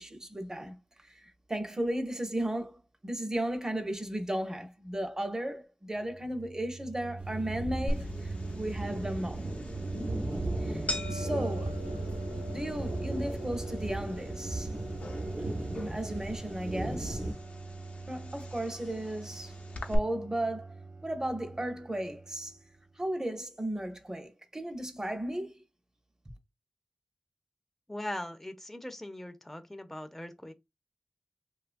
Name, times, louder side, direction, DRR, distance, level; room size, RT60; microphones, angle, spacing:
voice 1, 0.0-9.5 10.6-11.8 12.5-14.7 15.7-17.2 18.1-19.5 19.9-20.8 21.0-22.6 23.0-25.6, right 1 dB, 25° right, 0.6 m, -35 dB
sound 1, 5.9-22.6, right 3 dB, 65° right, 0.3 m, -42 dB
sound 2, 7.2-17.3, right 1 dB, 85° right, 0.8 m, -37 dB
sound 3, 7.9-20.0, left 2 dB, 80° left, 0.5 m, -42 dB
voice 2, 27.9-30.5, left 1 dB, 10° left, 0.4 m, -40 dB
2.8 x 2.3 x 2.5 m
wide cardioid pair, 60°, 2 cm